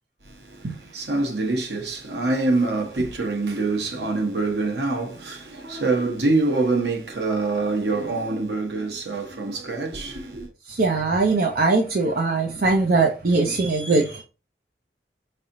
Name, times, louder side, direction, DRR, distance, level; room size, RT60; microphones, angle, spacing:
voice 1, 0.2-10.5, right 3 dB, 75° right, 1.3 m, -25 dB
voice 2, 10.7-14.2, right 3 dB, 55° right, 0.6 m, -21 dB
5.6 x 3.3 x 2.6 m
head